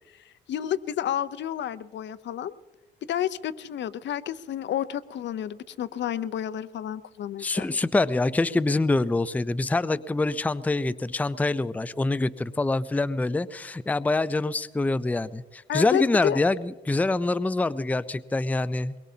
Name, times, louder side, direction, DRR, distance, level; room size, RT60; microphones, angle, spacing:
voice 1, 0.5-2.5 3.0-7.7 15.7-16.4, left 10 dB, 65° left, 15 dB, 0.7 m, -30 dB
voice 2, 7.4-18.9, left 2 dB, 10° left, 15 dB, 0.5 m, -25 dB
23.0 x 22.0 x 2.8 m, 1.2 s
cardioid pair, 90°, 20 cm